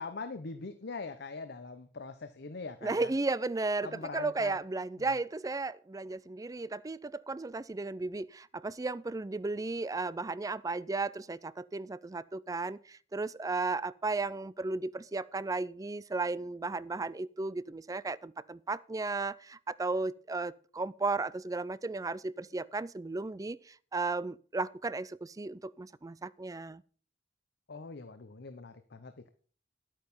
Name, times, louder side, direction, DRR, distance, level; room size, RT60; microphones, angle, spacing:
voice 1, 0.0-3.1 3.8-4.6 5.0-5.1 27.7-29.3, left 4 dB, 60° left, 0.8 m, -42 dB
voice 2, 2.8-26.8, right 3 dB, 20° right, 0.4 m, -35 dB
11.0 x 8.9 x 5.4 m
head